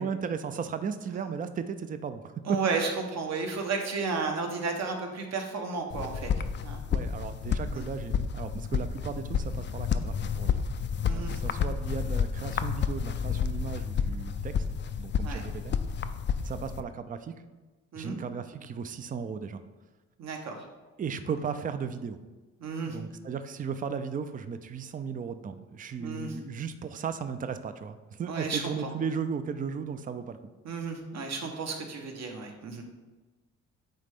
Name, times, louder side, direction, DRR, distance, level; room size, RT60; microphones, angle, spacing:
voice 1, 0.0-2.6 6.9-10.6 11.1-14.7 15.0-15.7 16.4-17.3 18.0-19.6 21.0-22.2 22.8-30.4, right 6 dB, 30° right, 10 dB, 0.4 m, -35 dB
voice 2, 2.4-6.3 6.6-6.8 7.7-7.9 11.1-11.3 15.2-15.4 17.9-18.2 20.2-20.7 22.6-23.0 26.0-26.4 28.2-28.9 30.6-32.8, right 4 dB, 60° right, 3 dB, 1.1 m, -33 dB
sound 1, 5.9-16.8, left 7 dB, 40° left, 0.4 m, -30 dB
8.9 x 3.2 x 3.6 m, 1.2 s
cardioid pair, 90°, 30 cm